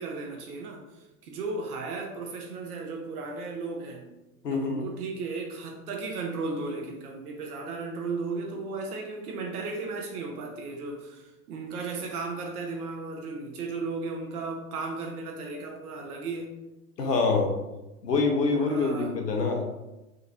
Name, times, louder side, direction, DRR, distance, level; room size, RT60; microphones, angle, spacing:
voice 1, 0.0-4.1 4.5-16.6 18.5-19.1, right 3 dB, 65° right, 1 dB, 0.8 m, -35 dB
voice 2, 4.4-4.8 17.0-17.5 18.0-19.6, left 4 dB, 85° left, 3 dB, 0.8 m, -25 dB
3.8 x 2.8 x 2.5 m, 1.0 s
figure-of-eight pair, 100°, 47 cm